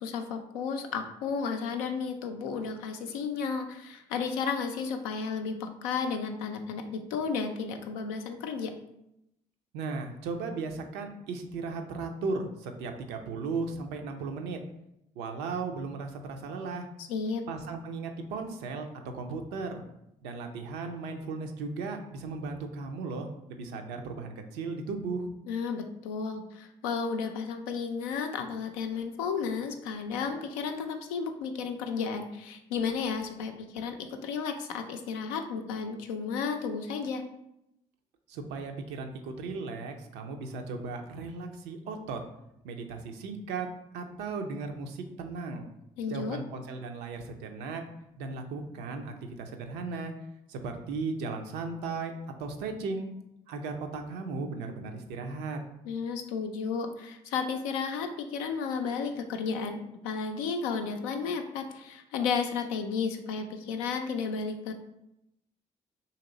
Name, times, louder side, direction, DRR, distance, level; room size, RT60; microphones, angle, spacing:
voice 1, 0.0-8.7 17.0-17.4 25.5-37.2 46.0-46.4 55.9-64.7, left 5 dB, 85° left, 5 dB, 0.4 m, -33 dB
voice 2, 9.7-14.6 15.2-16.9 17.5-19.8 20.2-25.3 38.3-42.2 42.6-43.7 43.9-45.6 46.1-47.8 48.2-50.1 50.5-52.1 52.4-53.1 53.5-55.6, right 4 dB, 75° right, 5 dB, 0.5 m, -36 dB
3.0 x 2.9 x 3.8 m, 0.84 s
hypercardioid pair, 45°, 17 cm